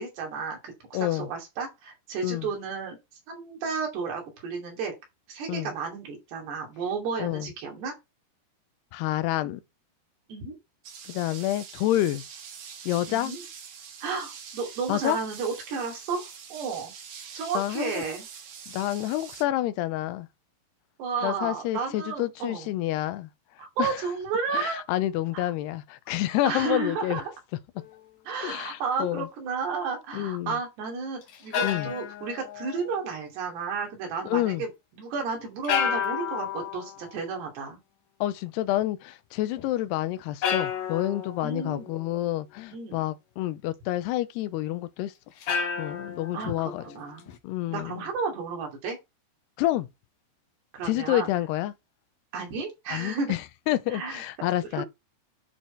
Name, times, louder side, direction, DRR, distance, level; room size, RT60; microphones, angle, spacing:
voice 1, 0.0-3.0 3.3-4.9 5.3-8.0 10.3-10.6 13.1-13.4 14.0-16.2 16.5-16.9 17.3-18.3 21.0-22.7 23.6-24.8 25.3-25.5 26.4-27.3 28.3-37.8 41.4-41.9 42.7-43.0 46.3-46.5 46.8-47.3 47.7-49.0 50.7-51.3 52.3-53.3 53.9-54.2 54.7-54.9, right 5 dB, 90° right, 4.9 m, -32 dB
voice 2, 0.9-1.3 2.2-2.5 5.5-5.7 7.2-7.5 8.9-9.6 11.1-12.2 12.9-13.3 14.9-15.2 17.5-18.0 18.7-20.3 21.2-23.3 23.8-23.9 24.5-27.2 28.4-29.3 30.1-30.6 31.6-31.9 34.2-34.6 38.2-45.1 45.8-46.8 47.4-48.0 49.6-49.9 50.8-51.7 52.9-53.4 53.7-54.9, left 14 dB, 90° left, 2.8 m, -28 dB
sound 1, 10.8-19.4, right 7 dB, 55° right, 2.3 m, -44 dB
sound 2, 27.8-28.1 31.2-33.1 35.6-37.0 39.6-39.7 40.4-42.1 45.4-47.4, left 8 dB, 65° left, 1.9 m, -31 dB
11.0 x 4.3 x 4.5 m
omnidirectional pair, 4.6 m